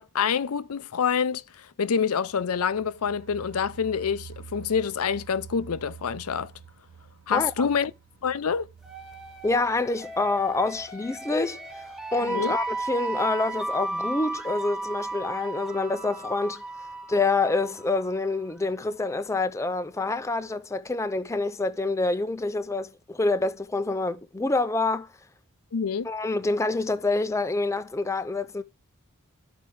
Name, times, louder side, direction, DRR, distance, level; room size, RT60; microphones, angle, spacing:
voice 1, 0.0-6.5 7.3-7.9 8.2-8.7 12.3-12.5 25.7-26.1, left 6 dB, 85° left, 0.5 m, -27 dB
sound 1, 2.2-12.9 13.3-13.4 13.7-13.8, right 7 dB, 65° right, 0.6 m, -49 dB
voice 2, 7.3-7.7 9.4-11.6 12.1-16.6 17.1-25.1 26.0-28.6, left 3 dB, 15° left, 0.4 m, -27 dB
sound 2, 8.8-18.5, right 2 dB, 5° right, 1.5 m, -35 dB
13.0 x 4.4 x 4.7 m
head